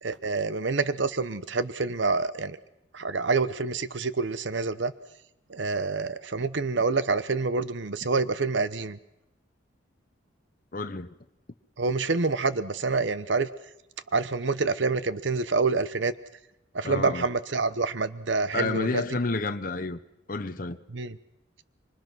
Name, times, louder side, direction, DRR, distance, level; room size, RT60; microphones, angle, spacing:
voice 1, 0.0-2.6 2.9-4.9 5.5-9.0 11.8-13.5 14.1-16.1 16.7-19.0 20.9-21.2, right 4 dB, 65° right, 0.9 m, -27 dB
voice 2, 10.7-11.1 16.8-17.3 18.5-20.0 20.3-20.8, left 3 dB, 45° left, 0.9 m, -30 dB
25.5 x 24.5 x 6.2 m
head